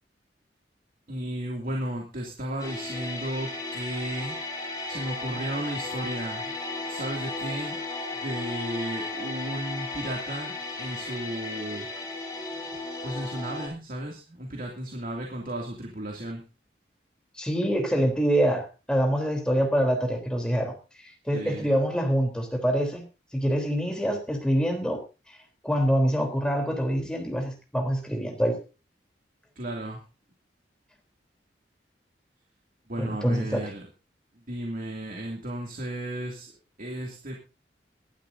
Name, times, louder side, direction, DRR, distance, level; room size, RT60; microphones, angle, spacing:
voice 1, 1.1-4.3 4.9-6.5 6.9-7.8 8.2-11.9 13.0-16.4 21.3-21.7 29.6-30.0 32.9-33.8 34.5-36.5 36.8-37.4, right 1 dB, 50° right, 0 dB, 2.7 m, -34 dB
sound 1, 2.6-13.7, left 2 dB, 20° left, 5.1 m, -35 dB
voice 2, 17.4-20.7 21.0-23.0 23.3-25.0 25.6-28.6 33.0-33.7, equal, 5° left, 3 dB, 3.6 m, -25 dB
22.5 x 12.0 x 2.7 m, 0.31 s
head